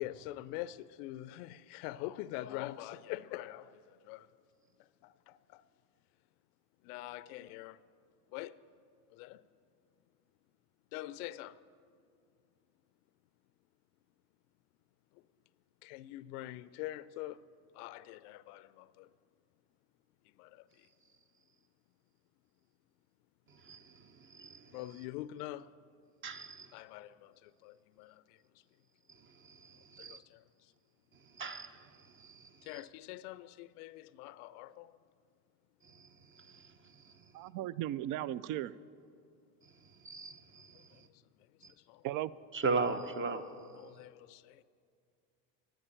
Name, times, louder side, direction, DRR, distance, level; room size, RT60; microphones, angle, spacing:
voice 1, 0.0-3.7 4.1-4.3 5.0-5.6 6.8-7.8 8.3-8.6 9.1-9.4 10.9-11.6 15.8-17.4 17.7-19.1 20.4-20.6 24.7-25.7 26.7-28.2 30.0-30.4 32.7-34.9 41.9-42.0 43.8-44.6, left 15 dB, 70° left, 0.5 m, -44 dB
voice 2, 23.5-25.1 26.2-26.8 29.1-30.2 31.2-32.8 35.8-37.2 39.6-41.1 41.6-41.7 42.5-43.4, right 4 dB, 25° right, 0.9 m, -40 dB
voice 3, 37.3-38.7 42.0-42.3, right 13 dB, 45° right, 0.4 m, -36 dB
9.8 x 9.1 x 8.8 m
hypercardioid pair, 85°, 49 cm